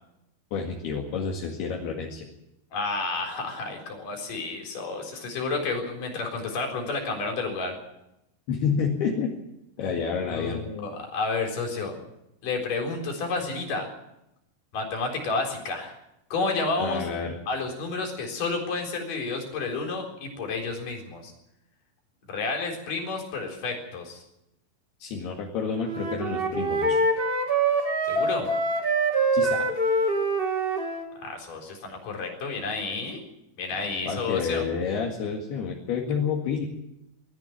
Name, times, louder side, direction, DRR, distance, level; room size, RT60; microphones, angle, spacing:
voice 1, 0.5-2.3 8.5-9.3 9.8-10.6 16.8-17.4 25.0-27.0 29.3-29.7 34.1-36.7, left 6 dB, 70° left, 0 dB, 4.1 m, -29 dB
voice 2, 2.7-7.7 9.8-9.9 10.3-12.0 12.4-13.9 14.7-16.0 16.3-17.0 17.5-21.3 22.3-24.2 28.1-28.5 31.2-33.2 33.6-34.6, left 3 dB, 50° left, 2 dB, 5.4 m, -30 dB
Wind instrument woodwind instrument, 25.8-31.1, right 2 dB, 40° right, 0.8 m, -25 dB
21.5 x 14.0 x 9.4 m, 0.86 s
omnidirectional pair, 5.0 m